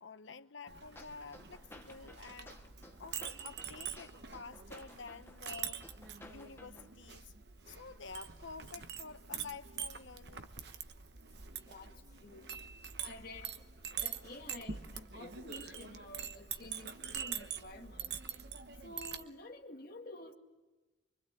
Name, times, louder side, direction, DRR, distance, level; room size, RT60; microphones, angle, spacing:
voice 1, 0.0-2.6 3.0-5.8 6.2-7.3 7.7-10.5, left 4 dB, 85° left, 1.0 m, -50 dB
Chink clink, 0.7-19.2, right 8 dB, 60° right, 1.2 m, -45 dB
sound 1, 1.0-6.9, left 1 dB, 15° left, 1.2 m, -56 dB
sound 2, 8.3-15.4, right 1 dB, 20° right, 5.4 m, -72 dB
voice 2, 13.0-13.5 13.9-18.2 18.8-20.3, left 2 dB, 50° left, 2.1 m, -50 dB
25.0 x 23.5 x 8.6 m
head